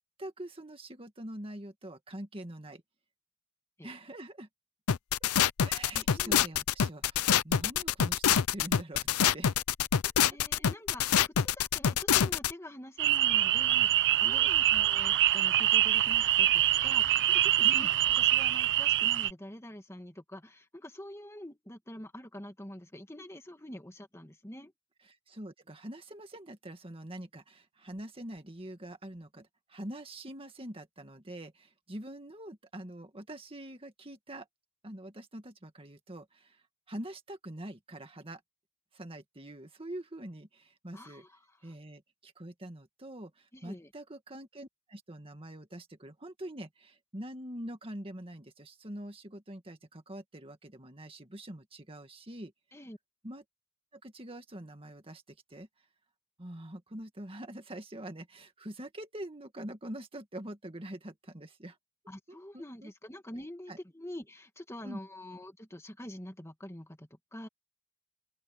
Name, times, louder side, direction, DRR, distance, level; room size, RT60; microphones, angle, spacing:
voice 1, 0.2-2.8 3.8-4.5 5.6-9.1 9.3-9.6 10.0-10.1 14.2-14.6 17.6-17.9 25.1-34.5 34.8-36.6 36.9-38.4 38.9-41.2 41.6-52.5 53.2-53.4 53.9-55.7 56.4-61.8 62.3-62.9 63.7-63.8 64.8-65.0, right 1 dB, 25° right, 2.0 m, -44 dB
sound 1, 4.9-12.5, left 9 dB, 80° left, 0.6 m, -26 dB
voice 2, 5.9-6.4 10.2-24.7 40.9-41.7 43.5-43.9 52.7-53.0 62.1-67.5, left 1 dB, 10° left, 2.0 m, -46 dB
sound 2, 13.0-19.3, right 13 dB, 55° right, 0.6 m, -25 dB
open air
head